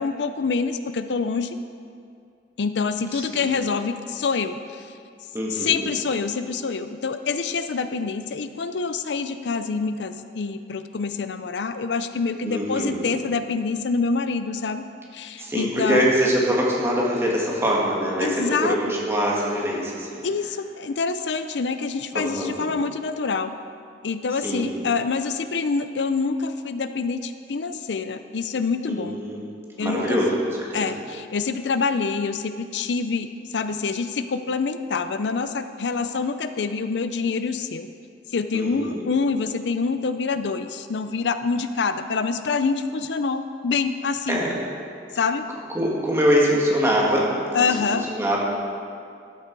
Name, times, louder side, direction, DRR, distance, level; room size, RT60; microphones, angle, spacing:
voice 1, 0.0-1.6 2.6-4.6 5.5-14.8 15.1-16.1 18.2-18.8 20.2-23.5 24.0-29.2 29.8-30.2 30.7-33.3 33.5-37.9 38.3-44.4 45.1-45.4 47.5-48.0, left 4 dB, 80° left, 10 dB, 0.5 m, -26 dB
voice 2, 3.1-3.5 5.3-5.9 12.4-13.2 15.4-20.2 22.1-22.7 24.4-24.7 28.9-29.5 29.8-30.9 38.5-39.0 44.3-44.6 45.7-48.4, equal, 15° right, -4 dB, 2.0 m, -24 dB
12.5 x 9.0 x 4.7 m, 2.3 s
head